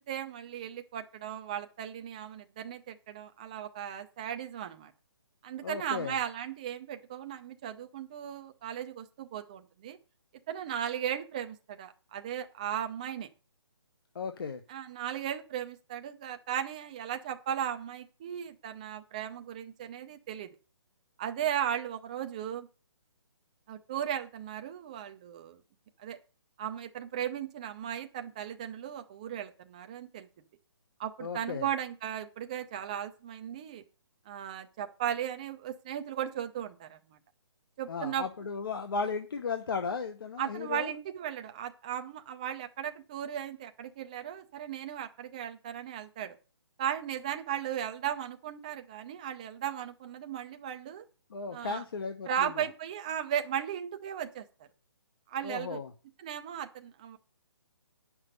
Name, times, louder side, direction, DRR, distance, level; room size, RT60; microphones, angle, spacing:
voice 1, 0.1-4.9 5.4-10.0 10.5-13.3 14.7-20.5 21.2-22.7 23.7-25.6 26.0-26.2 26.6-30.3 31.0-33.8 34.3-37.0 37.8-38.2 40.4-46.4 46.8-51.0 51.5-51.8 52.3-54.4 55.3-55.8 56.2-57.2, right 10 dB, 15° right, 6 dB, 0.5 m, -36 dB
voice 2, 5.6-6.2 14.1-14.6 31.2-31.7 37.9-40.9 51.3-52.7 55.4-55.9, left 5 dB, 55° left, 7 dB, 0.9 m, -35 dB
9.4 x 5.9 x 6.6 m, 0.35 s
hypercardioid pair, 170°, 14 cm